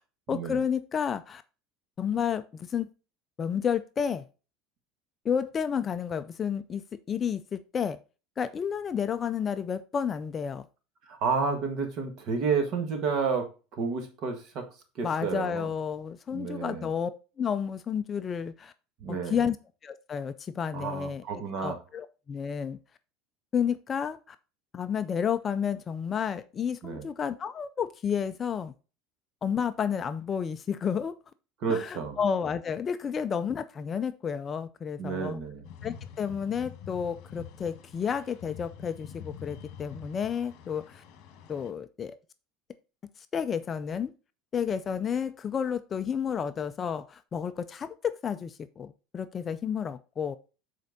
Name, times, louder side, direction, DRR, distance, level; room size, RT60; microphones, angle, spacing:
voice 1, 0.3-1.4 2.0-2.9 3.4-4.2 5.2-6.8 7.1-8.0 8.4-10.6 15.0-17.1 17.4-18.7 19.1-19.6 19.8-21.2 21.6-22.8 23.5-24.4 24.7-28.7 29.4-31.1 31.7-35.4 35.8-41.0 41.5-42.2 43.3-44.1 44.5-50.4, left 7 dB, 25° left, 11 dB, 0.3 m, -31 dB
voice 2, 11.1-14.7 15.0-15.7 16.3-16.9 19.0-19.5 20.7-21.8 26.8-27.0 31.6-32.2 35.0-35.6, right 5 dB, 40° right, 5 dB, 1.6 m, -31 dB
sound 1, 35.6-41.7, left 8 dB, 50° left, 1.4 m, -46 dB
7.4 x 4.4 x 3.9 m, 0.33 s
cardioid pair, 160°, 0 cm